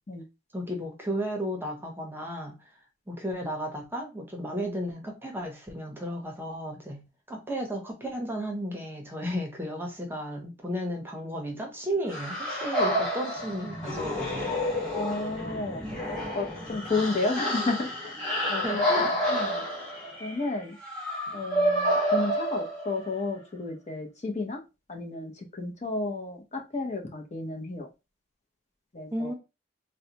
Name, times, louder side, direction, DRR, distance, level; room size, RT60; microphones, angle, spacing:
voice 1, 0.5-2.6 3.1-7.0 7.3-14.6 18.6-19.2 29.1-29.3, equal, 10° right, 2 dB, 0.8 m, -34 dB
sound 1, 12.1-23.1, equal, 5° left, 1.3 m, -29 dB
voice 2, 14.9-15.8 16.3-18.2 18.5-18.8 19.3-19.6 20.2-20.8 21.3-24.6 24.9-27.9 28.9-29.3, left 3 dB, 40° left, 3 dB, 0.8 m, -32 dB
3.9 x 2.2 x 2.8 m, 0.26 s
head